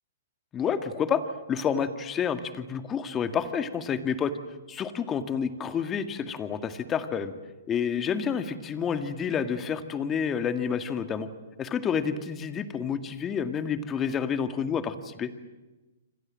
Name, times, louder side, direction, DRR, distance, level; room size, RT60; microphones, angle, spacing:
voice 1, 0.5-1.2 1.5-4.3 4.7-7.3 7.7-11.3 11.6-15.3, left 7 dB, 20° left, 9 dB, 2.1 m, -29 dB
28.5 x 25.5 x 7.7 m, 1.1 s
hypercardioid pair, 135°, 0 cm